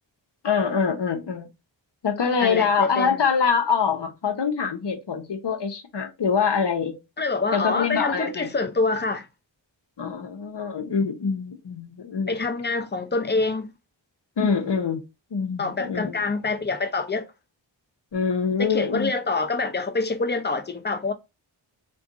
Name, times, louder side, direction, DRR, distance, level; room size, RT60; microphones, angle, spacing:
voice 1, 0.4-1.5 2.0-7.0 7.5-8.5 10.0-12.4 14.4-15.0 15.3-16.2 18.1-19.1, left 6 dB, 60° left, 0.8 m, -24 dB
voice 2, 2.4-3.2 7.2-9.3 12.3-13.7 15.6-17.3 18.6-21.1, left 3 dB, 25° left, 0.5 m, -26 dB
2.5 x 2.3 x 3.7 m
cardioid pair, 50°, 47 cm